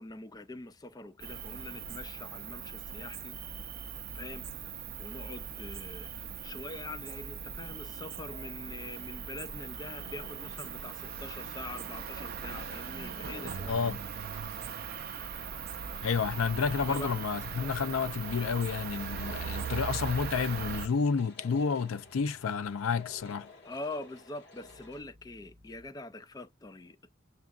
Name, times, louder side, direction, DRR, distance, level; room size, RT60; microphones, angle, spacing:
voice 1, 0.0-3.3 4.1-13.8 16.9-17.1 23.6-27.1, left 2 dB, 20° left, 0.3 m, -44 dB
Cricket, 1.2-20.9, right 7 dB, 45° right, 0.5 m, -40 dB
sound 1, 8.1-25.0, left 4 dB, 55° left, 1.2 m, -54 dB
voice 2, 13.7-14.0 16.0-23.5, left 5 dB, 80° left, 0.5 m, -30 dB
sound 2, 21.9-23.2 24.5-25.9, equal, 10° right, 0.9 m, -60 dB
6.7 x 2.4 x 2.4 m
head